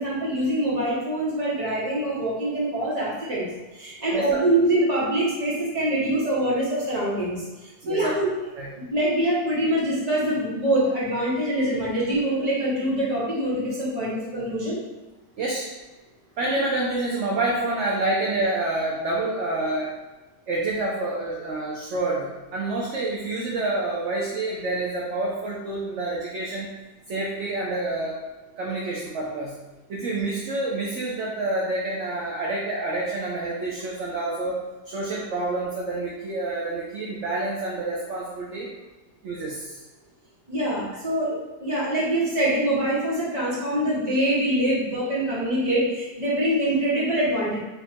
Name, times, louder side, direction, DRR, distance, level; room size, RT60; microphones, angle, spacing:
voice 1, 0.0-8.3 8.9-14.8 40.5-47.6, right 1 dB, 30° right, -7 dB, 1.2 m, -24 dB
voice 2, 7.8-8.2 8.6-8.7 15.4-15.7 16.4-19.9 20.5-26.7 27.1-28.2 28.6-29.5 29.9-38.7 39.2-39.8, right 2 dB, 60° right, -4 dB, 0.9 m, -28 dB
3.6 x 2.5 x 4.3 m, 1.2 s
omnidirectional pair, 1.6 m